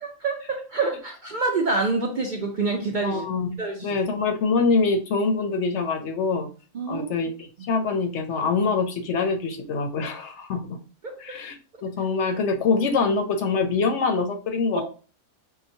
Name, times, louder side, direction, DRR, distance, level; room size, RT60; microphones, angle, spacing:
voice 1, 0.0-3.2 3.6-4.0 6.7-7.1 11.0-11.1 14.7-14.8, right 3 dB, 50° right, 1 dB, 0.6 m, -26 dB
voice 2, 3.0-6.5 6.9-10.8 11.2-11.6 11.8-14.8, left 4 dB, 65° left, 5 dB, 0.8 m, -24 dB
5.5 x 2.2 x 2.6 m, 0.36 s
omnidirectional pair, 1.4 m